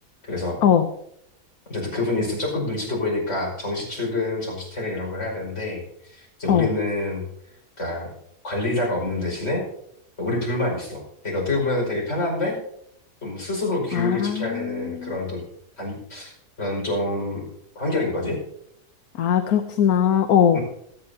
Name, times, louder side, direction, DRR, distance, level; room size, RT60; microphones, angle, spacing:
voice 1, 0.3-0.6 1.7-7.2 7.8-8.1 8.4-9.6 10.2-12.6 13.2-15.4 15.8-16.3 16.6-17.5 17.8-18.4 20.5-20.6, left 2 dB, 45° left, -2 dB, 5.8 m, -27 dB
voice 2, 13.9-15.1 19.2-20.6, left 9 dB, 70° left, 7 dB, 1.3 m, -20 dB
27.5 x 9.7 x 2.8 m, 0.74 s
omnidirectional pair, 1.7 m